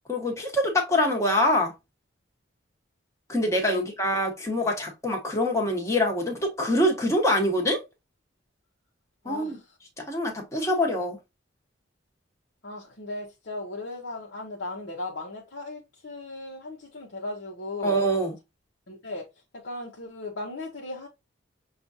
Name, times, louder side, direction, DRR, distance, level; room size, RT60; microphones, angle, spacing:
voice 1, 0.1-1.7 3.3-7.8 9.2-9.6 10.0-11.2 17.8-18.3, left 1 dB, 15° left, 1.3 m, -25 dB
voice 2, 9.2-9.6 12.6-18.0 18.9-19.3 19.5-21.1, left 2 dB, 60° left, 1.0 m, -37 dB
6.7 x 2.4 x 2.7 m
head